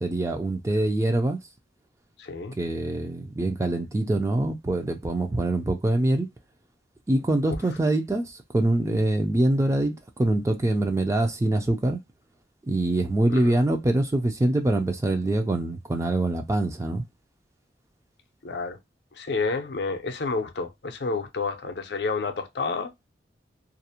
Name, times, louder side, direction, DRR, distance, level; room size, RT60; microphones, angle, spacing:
voice 1, 0.0-1.4 2.6-6.3 7.1-12.0 12.7-17.0, right 1 dB, 15° right, 0.3 m, -24 dB
voice 2, 2.2-2.5 13.3-13.6 18.4-18.8 19.1-22.9, left 4 dB, 65° left, 0.5 m, -30 dB
2.4 x 2.0 x 2.7 m
head